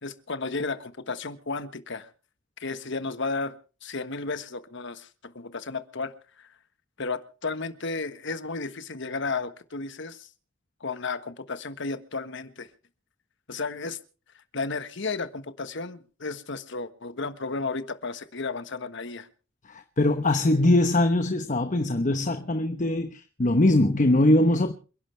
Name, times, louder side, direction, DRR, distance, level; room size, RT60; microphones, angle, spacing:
voice 1, 0.0-2.1 2.6-6.5 7.0-10.3 10.8-12.7 13.5-14.0 14.5-19.3, left 3 dB, 65° left, 1.4 m, -33 dB
voice 2, 19.7-24.7, left 1 dB, 40° left, 1.0 m, -22 dB
28.5 x 11.0 x 3.4 m
head